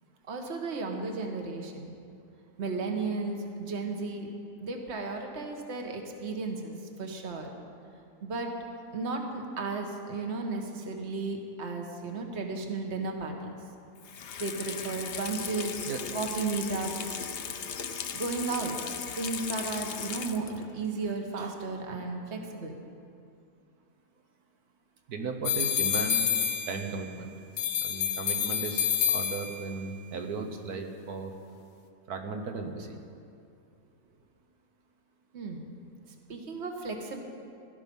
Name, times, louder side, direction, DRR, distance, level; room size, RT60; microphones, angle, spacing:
voice 1, 0.3-1.9 2.6-4.3 4.6-7.5 8.2-8.5 8.9-13.6 14.4-15.9 16.1-17.1 18.1-18.8 19.1-22.7 35.3-35.7 36.3-37.2, right 3 dB, 45° right, 2 dB, 1.6 m, -34 dB
Water tap faucet / Sink (filling or washing), 14.0-20.7 21.1-21.2, left 7 dB, 55° left, 0.7 m, -37 dB
voice 2, 25.1-26.3 26.7-27.3 27.8-31.3 32.1-33.0, right 4 dB, 75° right, 5 dB, 1.7 m, -36 dB
sound 1, 25.4-27.1 27.6-29.8, left 8 dB, 80° left, 1.4 m, -28 dB
17.0 x 13.0 x 5.5 m, 2.5 s
omnidirectional pair, 1.6 m